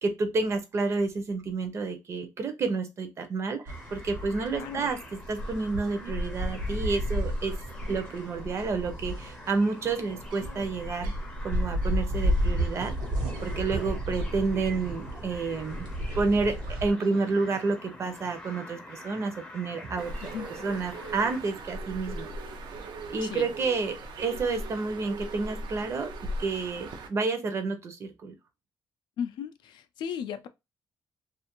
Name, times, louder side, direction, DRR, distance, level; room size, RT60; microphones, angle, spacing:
voice 1, 0.0-7.6 7.9-11.1 11.4-12.9 13.4-20.3 20.6-22.3 22.8-28.3, right 4 dB, 35° right, 0.5 m, -30 dB
sound 1, 3.7-21.4, left 2 dB, 15° left, 0.5 m, -47 dB
sound 2, 3.7-16.9, equal, 70° right, 1.0 m, -32 dB
voice 2, 4.5-4.9 20.2-20.7 23.2-23.5 29.2-30.5, left 8 dB, 80° left, 0.4 m, -36 dB
Bird, 20.0-27.1, right 2 dB, 90° right, 0.5 m, -39 dB
2.5 x 2.4 x 2.9 m
cardioid pair, 175°, 8 cm